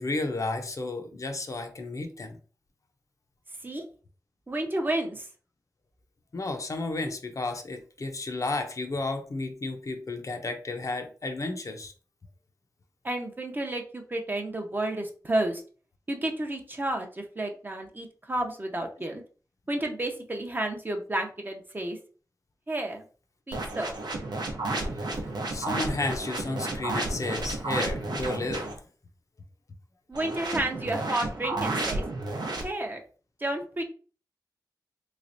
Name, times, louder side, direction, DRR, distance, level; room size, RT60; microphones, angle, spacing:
voice 1, 0.0-2.4 6.3-11.9 25.5-28.8, left 2 dB, 50° left, 5 dB, 0.5 m, -32 dB
voice 2, 4.5-5.3 13.0-15.6 16.1-19.2 19.7-22.0 22.7-23.0 23.5-23.9 30.1-32.0 32.6-33.0 33.4-33.8, right 1 dB, 30° right, 3 dB, 0.6 m, -31 dB
sound 1, 23.5-28.8 30.1-32.6, right 2 dB, 85° right, 0.7 m, -32 dB
3.3 x 3.2 x 2.6 m, 0.39 s
wide cardioid pair, 100°, 7 cm